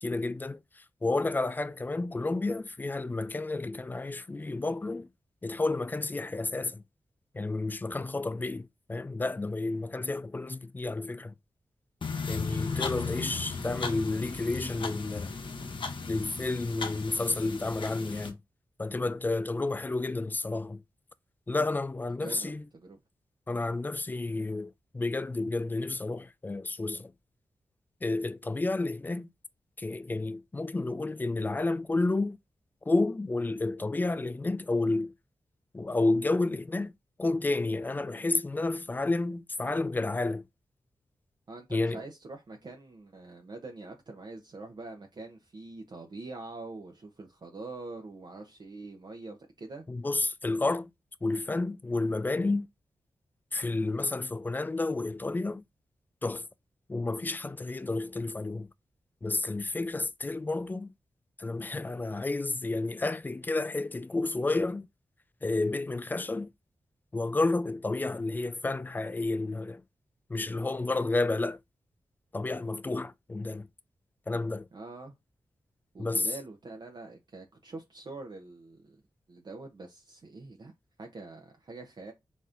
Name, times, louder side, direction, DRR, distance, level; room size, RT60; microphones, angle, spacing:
voice 1, 0.0-5.1 5.4-6.8 7.3-11.3 12.3-15.4 16.1-18.4 18.8-20.8 21.5-22.6 23.5-27.1 28.0-29.3 29.8-32.4 32.9-35.1 35.7-36.9 37.2-40.4 41.7-42.0 49.9-50.9 51.2-52.7 53.5-55.6 56.2-56.5 56.9-58.7 59.2-60.9 61.4-64.9 65.4-66.5 67.1-69.8 70.3-71.6 72.3-73.7 74.3-74.7 76.0-76.3, left 2 dB, 20° left, 0.3 m, -31 dB
sound 1, 12.0-18.3, left 4 dB, 60° left, 0.8 m, -36 dB
voice 2, 22.1-23.0 41.5-49.8 74.7-75.2 75.9-79.0 79.3-80.7 81.0-82.1, right 3 dB, 50° right, 0.7 m, -44 dB
4.1 x 3.5 x 2.5 m
wide cardioid pair, 95°, 10 cm